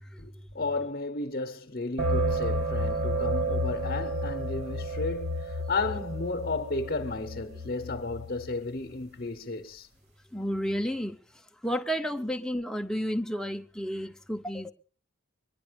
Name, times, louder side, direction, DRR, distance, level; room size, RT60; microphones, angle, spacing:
voice 1, 0.2-9.9, left 3 dB, 40° left, 0.9 m, -33 dB
sound 1, 2.0-8.5, right 1 dB, 50° right, 1.6 m, -31 dB
voice 2, 10.3-11.2 11.6-14.7, equal, 5° left, 0.6 m, -31 dB
22.0 x 10.5 x 5.1 m
head